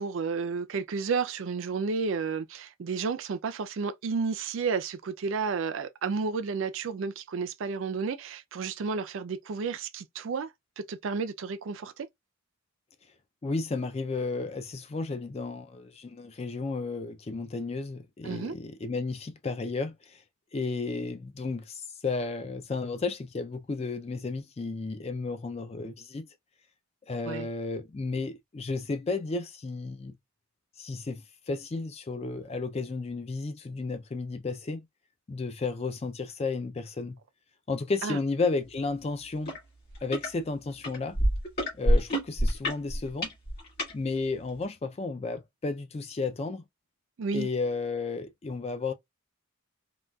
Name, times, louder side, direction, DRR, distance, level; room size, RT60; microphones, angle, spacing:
voice 1, 0.0-10.5 10.8-12.1 18.2-18.6 27.3-27.5 38.0-38.2 47.2-47.5, right 5 dB, 60° right, 0.4 m, -31 dB
voice 2, 13.4-20.2 20.5-26.2 27.1-30.2 30.8-34.9 35.3-37.2 37.7-39.5 40.0-41.2 41.7-43.3 43.9-46.6 47.3-48.9, left 3 dB, 30° left, 0.3 m, -33 dB
sound 1, 39.5-39.6 39.9-40.3 40.8-43.9 44.6-44.7, equal, 45° left, 2.0 m, -26 dB
3.8 x 2.3 x 2.2 m
head